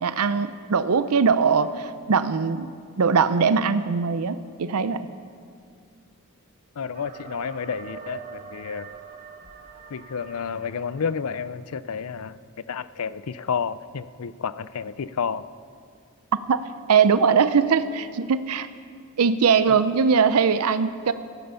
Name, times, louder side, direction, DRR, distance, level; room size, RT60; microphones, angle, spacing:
voice 1, 0.0-2.7 3.0-5.1 16.5-18.7 19.2-21.1, right 6 dB, 80° right, 12 dB, 0.6 m, -21 dB
voice 2, 6.8-8.9 9.9-12.4 12.7-15.5 19.7-19.8, left 6 dB, 75° left, 16 dB, 0.5 m, -30 dB
sound 1, 6.9-11.8, right 5 dB, 40° right, 1.3 m, -43 dB
16.5 x 14.0 x 5.6 m, 2.2 s
head